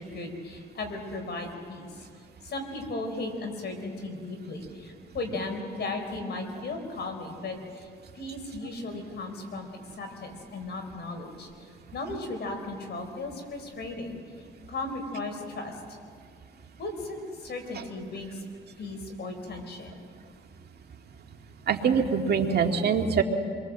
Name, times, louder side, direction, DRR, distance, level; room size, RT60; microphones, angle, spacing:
voice 1, 0.0-2.0 2.4-7.9 8.1-9.7 10.0-11.7 11.9-16.0 16.8-18.4 18.8-20.0, left 2 dB, 55° left, 5 dB, 4.8 m, -36 dB
voice 2, 21.7-23.2, right 6 dB, 55° right, 3 dB, 2.1 m, -24 dB
27.5 x 22.0 x 7.7 m, 2.2 s
cardioid pair, 90°, 20 cm